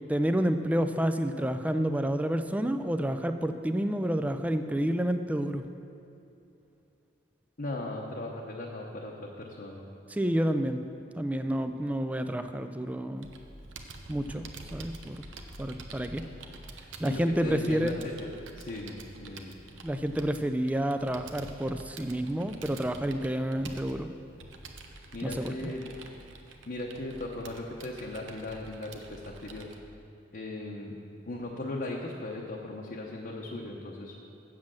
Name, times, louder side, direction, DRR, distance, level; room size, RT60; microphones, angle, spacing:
voice 1, 0.1-5.6 10.1-10.8 11.1-13.3 14.1-15.2 15.6-16.2 17.0-17.9 19.8-24.1 25.2-25.5, right 1 dB, 10° right, 8 dB, 0.3 m, -29 dB
voice 2, 7.6-9.8 17.0-19.5 25.1-25.9 26.7-29.7 30.3-30.9 31.3-34.2, left 2 dB, 50° left, -2 dB, 0.8 m, -38 dB
Computer keyboard, 13.2-29.8, right 3 dB, 80° right, 0.8 m, -47 dB
7.5 x 7.4 x 7.4 m, 2.8 s
head